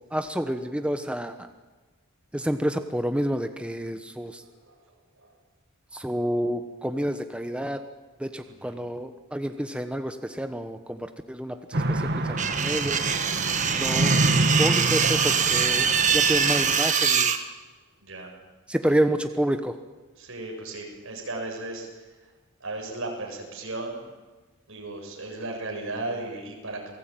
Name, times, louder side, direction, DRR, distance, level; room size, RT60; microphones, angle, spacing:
voice 1, 0.1-1.5 2.3-4.4 5.9-7.8 8.2-13.0 13.8-14.2 14.5-17.3 18.7-19.8, equal, 5° right, 7 dB, 1.0 m, -29 dB
voice 2, 4.4-4.8 5.2-5.3 8.6-8.7 11.5-11.9 13.5-13.8 18.0-18.3 20.2-21.9 22.6-24.1 24.7-26.9, right 2 dB, 65° right, 1 dB, 7.1 m, -36 dB
sound 1, 11.7-16.8, right 1 dB, 50° right, 1.9 m, -27 dB
sound 2, 12.4-17.4, right 6 dB, 35° right, 1.6 m, -23 dB
28.0 x 19.0 x 9.1 m, 1.3 s
head